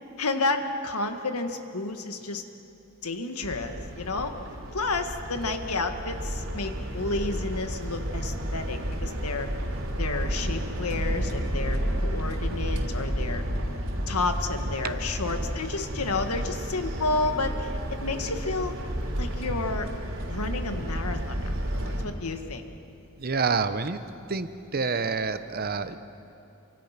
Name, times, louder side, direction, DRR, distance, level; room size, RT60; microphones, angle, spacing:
voice 1, 0.2-2.4 3.0-4.3 4.7-9.5 10.0-13.4 14.1-17.7 18.0-18.7 19.2-19.9 20.3-22.6, left 3 dB, 90° left, 6 dB, 1.7 m, -31 dB
sound 1, 3.4-22.0, equal, 65° right, 3.4 m, -31 dB
voice 2, 23.2-24.0 24.3-26.0, right 4 dB, 45° right, 11 dB, 0.9 m, -28 dB
28.0 x 24.5 x 5.9 m, 2.7 s
head